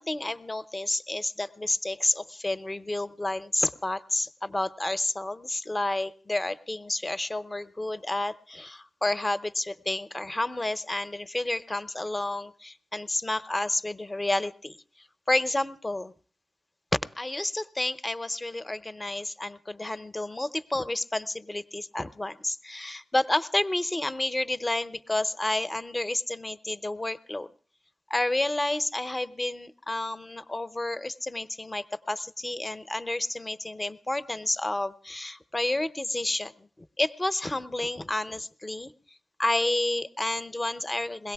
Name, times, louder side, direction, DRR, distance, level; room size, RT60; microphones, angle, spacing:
voice 1, 0.0-16.1 17.2-27.5 28.1-38.9 39.4-41.3, left 2 dB, 20° left, 13 dB, 0.7 m, -30 dB
22.0 x 17.0 x 3.5 m, 0.40 s
wide cardioid pair, 110°, 0 cm